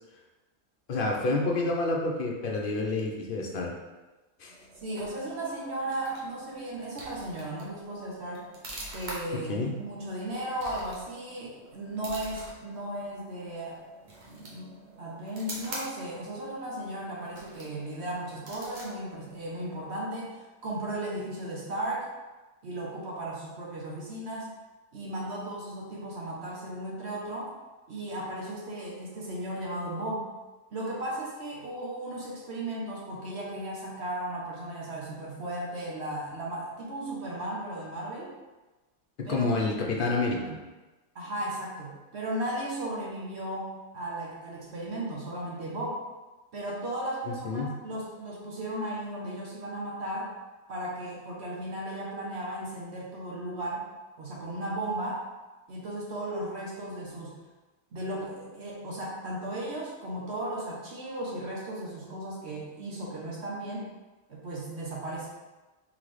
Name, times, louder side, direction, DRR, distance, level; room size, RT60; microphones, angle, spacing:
voice 1, 0.9-3.7 4.4-4.5 9.5-9.7 39.2-40.6 47.4-47.7, left 3 dB, 55° left, 0 dB, 0.7 m, -28 dB
sound 1, 4.4-20.0, right 1 dB, 40° right, 1.0 m, -46 dB
voice 2, 4.8-8.5 8.9-13.8 14.3-22.1 22.6-24.5 24.9-27.5 27.9-30.3 30.7-38.3 39.2-39.5 41.1-46.0 46.5-50.3 50.7-53.9 54.2-55.2 55.7-57.3 57.9-63.9 64.3-65.3, right 1 dB, 60° right, -4 dB, 1.1 m, -35 dB
3.8 x 3.8 x 3.2 m, 1.2 s
omnidirectional pair, 1.3 m